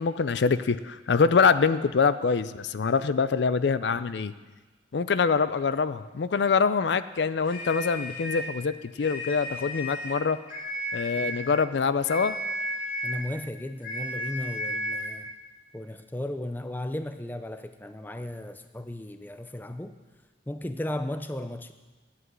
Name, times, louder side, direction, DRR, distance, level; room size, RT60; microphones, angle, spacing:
voice 1, 0.0-4.3 4.9-10.4 10.9-12.4, left 5 dB, 70° left, 14 dB, 0.4 m, -24 dB
sound 1, 7.4-8.5 9.0-10.2 10.5-11.5 12.1-13.3 13.8-15.2, equal, 45° left, 2.4 m, -33 dB
voice 2, 13.0-15.3 15.7-20.0 20.5-21.7, left 1 dB, 10° left, 9 dB, 0.4 m, -35 dB
11.0 x 8.3 x 7.9 m, 1.2 s
head